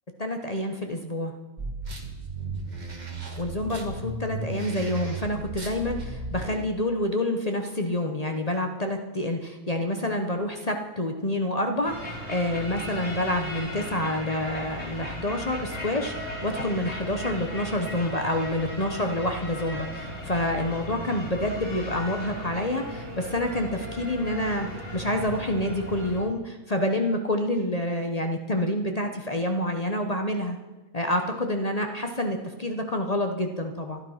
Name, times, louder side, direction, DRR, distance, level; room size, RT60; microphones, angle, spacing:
voice 1, 0.2-1.3 3.4-30.6 30.9-34.0, left 1 dB, 30° left, 4 dB, 0.8 m, -28 dB
sound 1, 1.6-6.6, right 2 dB, 30° right, 1.6 m, -35 dB
sound 2, 11.9-26.2, equal, 50° left, 3.5 m, -37 dB
12.0 x 11.0 x 5.6 m, 1.1 s
omnidirectional pair, 1.7 m